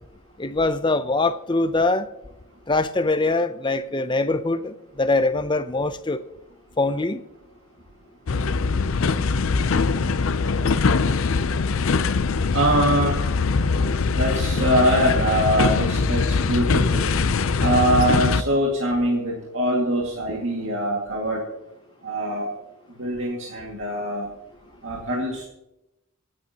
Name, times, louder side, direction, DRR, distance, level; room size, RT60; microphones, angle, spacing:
voice 1, 0.4-2.1 2.7-6.2 6.8-7.2, left 2 dB, 20° left, 0.5 m, -23 dB
sound 1, 8.3-18.4, left 4 dB, 75° left, 0.5 m, -22 dB
voice 2, 12.5-13.2 14.1-17.1 17.6-21.4 22.0-22.5 23.0-24.3 24.8-25.4, right 1 dB, 65° right, 2.1 m, -23 dB
25.5 x 8.7 x 2.9 m
head